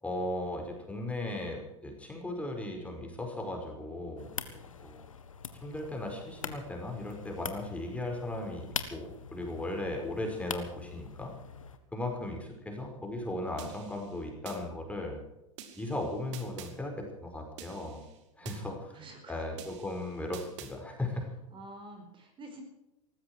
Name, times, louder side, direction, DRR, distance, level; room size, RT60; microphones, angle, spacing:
voice 1, 0.0-4.3 4.8-5.0 5.6-11.3 11.9-15.2 15.7-18.0 18.4-19.0 19.3-21.3, left 1 dB, 10° left, 2 dB, 5.2 m, -37 dB
sound 1, 4.2-11.8, left 6 dB, 90° left, 1.7 m, -43 dB
voice 2, 4.5-4.9 18.4-19.4 21.5-22.6, right 2 dB, 30° right, 4 dB, 4.8 m, -49 dB
sound 2, 13.6-14.6 15.6-16.7 17.6-18.6 19.6-20.7, right 9 dB, 65° right, 2.7 m, -48 dB
19.0 x 15.0 x 4.8 m, 0.93 s
hypercardioid pair, 95°, 17 cm